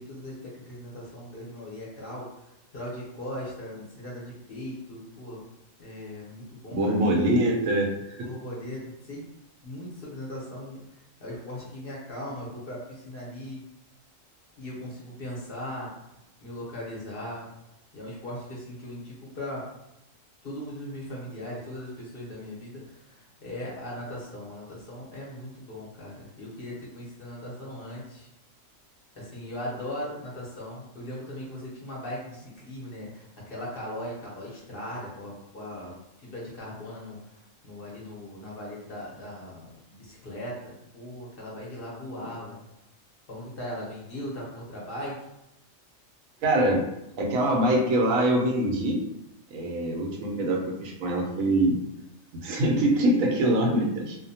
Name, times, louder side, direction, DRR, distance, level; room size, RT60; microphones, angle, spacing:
voice 1, 0.0-5.4 5.8-7.2 8.1-9.2 9.6-13.6 14.6-15.9 16.4-17.5 17.9-19.6 20.4-28.3 29.2-42.6 43.3-45.1, left 1 dB, 50° left, -5 dB, 1.0 m, -39 dB
voice 2, 6.7-8.3 46.4-46.8 47.2-49.0 49.5-51.8 52.4-54.2, right 1 dB, 90° right, 0 dB, 1.1 m, -24 dB
2.7 x 2.1 x 2.7 m, 0.86 s
omnidirectional pair, 1.4 m